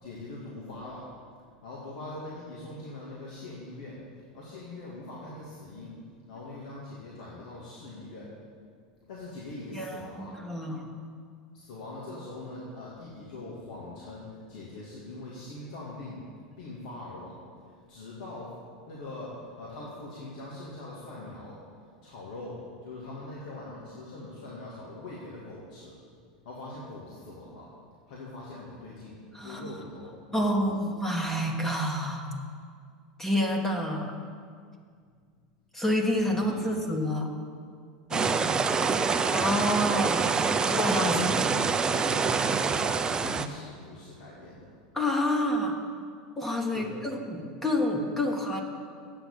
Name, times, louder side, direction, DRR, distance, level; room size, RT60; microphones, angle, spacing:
voice 1, 0.0-1.1 1.6-4.0 4.3-6.0 6.3-8.3 9.1-10.4 11.5-16.2 16.6-17.4 17.9-18.5 18.9-21.6 22.0-26.0 26.4-27.7 28.1-30.8 36.3-36.9 38.1-38.5 41.0-41.7 41.9-44.7 46.7-47.1, left 2 dB, 75° left, -5 dB, 2.3 m, -42 dB
voice 2, 9.7-10.9 29.3-29.6 30.3-32.3 33.2-34.1 35.7-37.3 39.3-40.3 40.7-41.2 44.9-45.8 46.4-48.6, left 1 dB, 10° left, 1 dB, 1.4 m, -28 dB
sound 1, 38.1-43.5, right 5 dB, 20° right, 0.5 m, -26 dB
9.0 x 7.0 x 8.6 m, 2.1 s
supercardioid pair, 120°, 4 cm